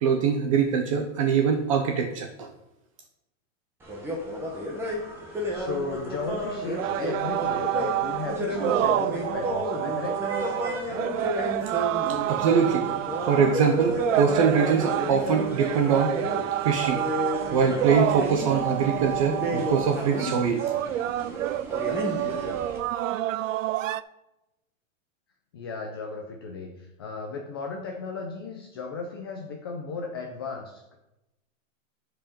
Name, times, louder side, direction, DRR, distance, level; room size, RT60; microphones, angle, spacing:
voice 1, 0.0-2.5 12.1-12.9 13.2-16.2 16.6-17.0 17.5-20.6, right 6 dB, 25° right, 4 dB, 0.6 m, -23 dB
sound 1, 3.8-22.8, equal, 5° right, 0.9 m, -32 dB
voice 2, 5.5-10.2 25.5-30.9, left 4 dB, 20° left, 2 dB, 0.4 m, -35 dB
sound 2, 6.7-24.0, right 13 dB, 70° right, 0.5 m, -29 dB
10.0 x 4.9 x 5.1 m, 0.92 s
supercardioid pair, 170°, 40 cm